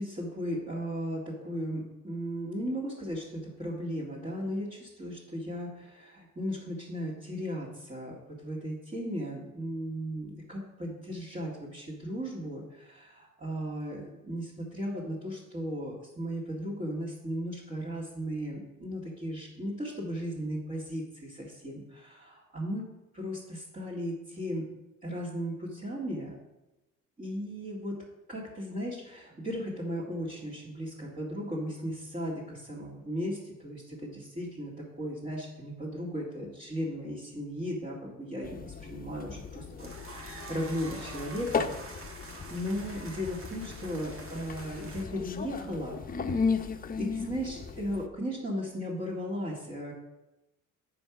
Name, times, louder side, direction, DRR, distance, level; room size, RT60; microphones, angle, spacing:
voice 1, 0.0-22.8 23.1-24.7 25.0-26.3 27.2-28.0 28.3-41.7 42.2-46.0 46.2-46.6 47.0-49.9, equal, 25° right, -7 dB, 2.1 m, -36 dB
sound 1, 38.4-48.1, left 5 dB, 30° left, 0.7 m, -36 dB
sound 2, 39.8-45.0, right 2 dB, 45° right, 1.5 m, -46 dB
7.7 x 5.5 x 6.0 m, 0.99 s
cardioid pair, 90°, 30 cm